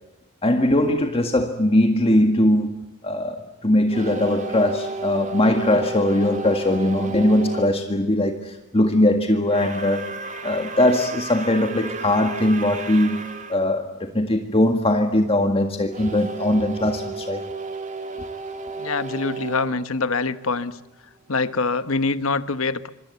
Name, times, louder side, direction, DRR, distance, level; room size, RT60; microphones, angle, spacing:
voice 1, 0.4-2.7 3.0-10.1 10.4-13.2 13.5-17.4, left 1 dB, 30° left, 1.8 m, -20 dB
sound 1, 3.9-7.7 9.4-13.6 15.9-20.7, right 3 dB, 35° right, 2.5 m, -33 dB
voice 2, 18.8-20.7 21.3-22.9, left 4 dB, 70° left, 1.2 m, -24 dB
26.0 x 25.5 x 8.3 m
head